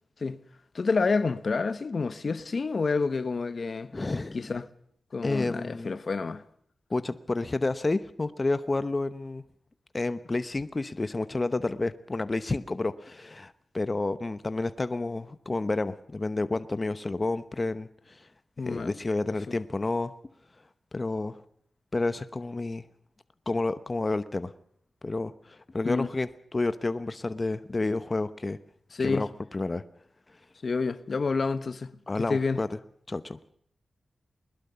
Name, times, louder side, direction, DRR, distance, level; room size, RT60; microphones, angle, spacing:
voice 1, 0.7-3.9 4.3-4.7 5.1-6.4 18.6-18.9 25.8-26.1 28.9-29.3 30.6-32.0 32.3-32.6, left 4 dB, 55° left, 1.1 m, -28 dB
voice 2, 3.9-4.4 5.2-5.9 6.9-9.4 9.9-18.3 18.6-20.1 20.9-21.4 21.9-22.8 23.5-24.5 25.0-28.6 29.0-29.8 32.1-32.7 33.1-33.4, left 2 dB, 35° left, 1.0 m, -30 dB
21.0 x 21.0 x 6.9 m
wide cardioid pair, 80°, 0 cm